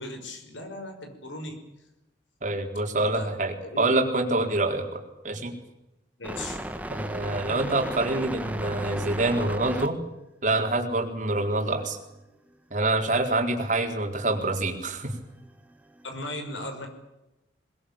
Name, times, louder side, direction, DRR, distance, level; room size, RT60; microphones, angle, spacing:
voice 1, 0.0-1.6 3.0-3.3 3.6-3.9 6.2-6.7 16.0-16.9, left 1 dB, 90° left, 6 dB, 5.8 m, -37 dB
voice 2, 2.4-5.0 5.2-5.5 6.9-10.0 10.4-12.0 12.7-15.1, right 2 dB, 40° right, 2 dB, 4.3 m, -26 dB
sound 1, 6.2-9.9 11.0-11.1 11.9-12.6 13.4-16.3, right 1 dB, 10° right, 1.5 m, -36 dB
22.0 x 21.5 x 8.9 m, 0.96 s
head